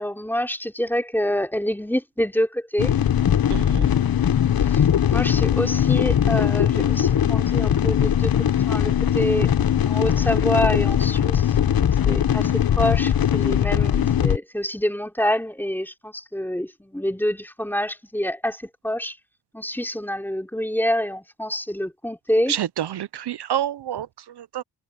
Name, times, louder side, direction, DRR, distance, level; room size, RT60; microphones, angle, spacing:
voice 1, 0.0-2.9 3.5-4.2 4.7-8.3 8.6-9.5 9.9-19.2 19.5-22.5, equal, 5° left, 3.2 m, -27 dB
sound 1, 2.8-14.4, left 9 dB, 60° left, 0.8 m, -20 dB
voice 2, 3.5-3.9 22.5-24.6, right 11 dB, 75° right, 0.6 m, -28 dB
wide cardioid pair, 85°, 41 cm